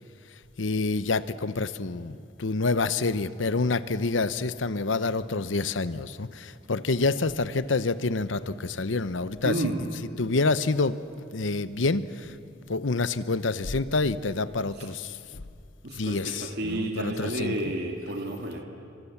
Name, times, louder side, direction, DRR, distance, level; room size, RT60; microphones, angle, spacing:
voice 1, 0.6-9.5 10.2-11.0 11.3-12.3 12.7-15.4 15.9-17.5, left 3 dB, 80° left, 14 dB, 0.9 m, -27 dB
voice 2, 9.4-9.8 14.8-14.9 15.8-18.6, right 1 dB, 60° right, 2 dB, 2.4 m, -31 dB
29.5 x 25.0 x 7.2 m, 2.3 s
head